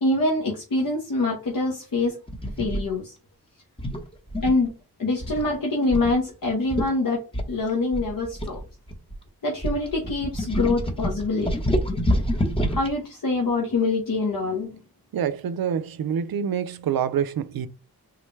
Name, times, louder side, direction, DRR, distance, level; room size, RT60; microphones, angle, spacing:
voice 1, 0.0-2.2 2.6-3.1 4.4-4.7 5.0-7.2 7.5-8.6 9.4-11.5 12.6-14.8, left 2 dB, 60° left, 1.0 m, -25 dB
sound 1, 2.3-2.8 3.8-4.7 5.2-5.5 5.9-6.1 6.4-6.5 6.7-6.9 7.3-9.1 9.6-12.9, equal, 15° left, 0.9 m, -26 dB
voice 2, 15.1-17.7, right 8 dB, 70° right, 0.5 m, -26 dB
3.7 x 2.1 x 3.2 m
cardioid pair, 45°, 37 cm